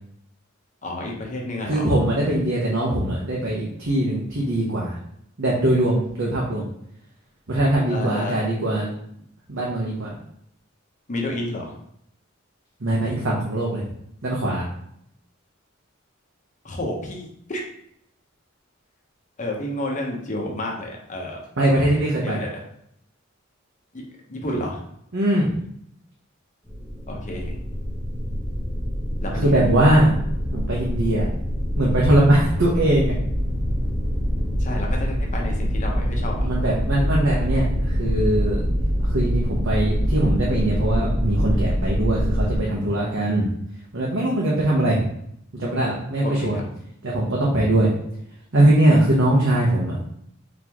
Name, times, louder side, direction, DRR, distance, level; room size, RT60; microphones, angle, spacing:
voice 1, 0.8-1.9 7.9-8.4 11.1-11.7 16.6-17.6 19.4-21.4 22.2-22.6 23.9-24.0 24.3-24.8 27.1-27.6 29.2-29.6 34.6-36.5 46.2-46.6, left 1 dB, 40° left, 0 dB, 1.0 m, -30 dB
voice 2, 1.7-5.0 5.4-6.7 7.5-8.9 9.5-10.2 12.8-13.8 14.2-14.6 21.6-22.4 25.1-25.5 29.4-30.1 30.5-31.3 31.8-33.1 36.4-38.6 39.1-43.5 43.9-45.0 45.5-46.6 47.0-47.9 48.5-50.0, right 1 dB, 65° right, -4 dB, 0.9 m, -21 dB
sound 1, 26.6-42.6, equal, 5° right, 1.1 m, -25 dB
4.1 x 3.6 x 3.0 m, 0.71 s
head